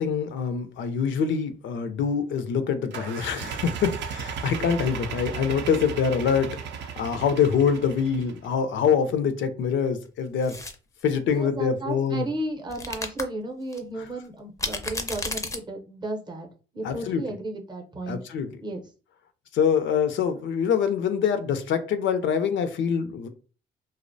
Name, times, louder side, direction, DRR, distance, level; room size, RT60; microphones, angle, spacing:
voice 1, 0.0-6.5 6.8-10.6 11.0-12.3 16.8-17.2 18.1-18.5 19.5-23.3, left 7 dB, 75° left, 10 dB, 0.4 m, -25 dB
sound 1, 2.9-8.5, right 7 dB, 65° right, 0.4 m, -35 dB
sound 2, 10.4-10.7 12.7-13.2 13.7-13.8 14.6-15.6, left 2 dB, 15° left, 0.4 m, -31 dB
voice 2, 11.2-16.5 16.7-18.2 18.6-18.8, right 1 dB, 20° right, 3 dB, 0.6 m, -34 dB
2.5 x 2.0 x 2.5 m, 0.35 s
cardioid pair, 90°, 20 cm